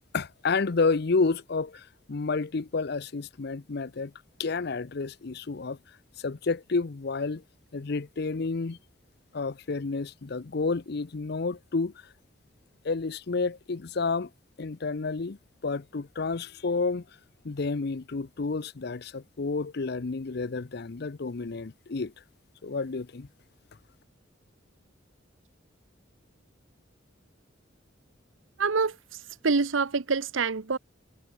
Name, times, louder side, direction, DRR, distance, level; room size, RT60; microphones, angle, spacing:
voice 1, 0.1-4.1 4.4-5.8 6.2-7.4 7.7-8.8 9.3-11.9 12.8-14.3 14.6-15.4 15.6-17.0 17.4-22.1 22.6-23.3, left 4 dB, 55° left, 0.6 m, -30 dB
voice 2, 28.6-30.8, right 4 dB, 80° right, 0.9 m, -27 dB
head